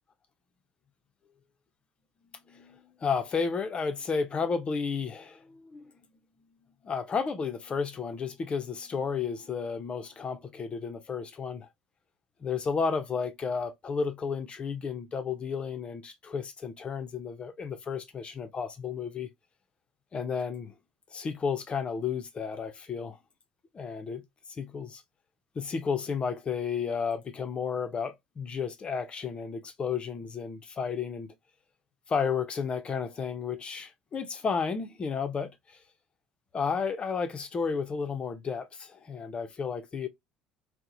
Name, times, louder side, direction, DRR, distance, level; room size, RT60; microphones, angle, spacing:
voice 1, 2.5-5.9 6.8-11.7 12.4-19.3 20.1-20.7 21.1-23.2 23.7-24.2 24.5-25.0 25.6-31.3 32.1-35.8 36.5-40.1, left 5 dB, 35° left, 0.5 m, -32 dB
2.8 x 2.1 x 2.4 m
hypercardioid pair, 65°, 3 cm